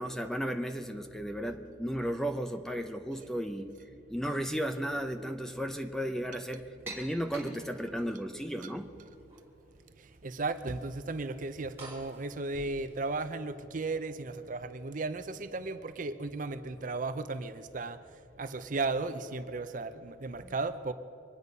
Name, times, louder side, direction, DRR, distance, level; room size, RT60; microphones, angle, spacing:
voice 1, 0.0-3.7 4.1-8.9 20.4-20.5, equal, 5° left, 6 dB, 0.6 m, -34 dB
sound 1, 6.9-8.1 8.8-9.4 9.7-10.3 10.5-13.3, right 2 dB, 15° right, 3.3 m, -49 dB
voice 2, 10.2-18.0 18.4-20.9, right 3 dB, 45° right, 11 dB, 0.6 m, -35 dB
24.5 x 9.8 x 5.4 m, 2.9 s
head